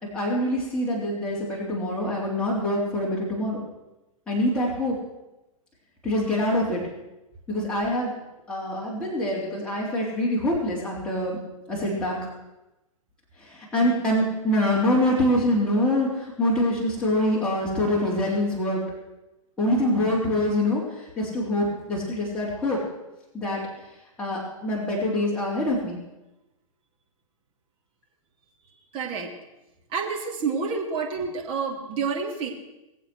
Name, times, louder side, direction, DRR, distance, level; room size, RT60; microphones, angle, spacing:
voice 1, 0.0-3.6 4.3-4.9 6.0-6.8 7.5-8.1 8.5-11.4 11.7-12.2 13.7-18.8 19.6-20.8 21.2-22.8 23.3-23.6 24.2-26.0, left 1 dB, 5° left, -7 dB, 3.9 m, -25 dB
voice 2, 28.9-29.3 29.9-32.5, right 5 dB, 30° right, 0 dB, 3.1 m, -28 dB
21.0 x 7.7 x 6.3 m, 0.97 s
hypercardioid pair, 130°, 18 cm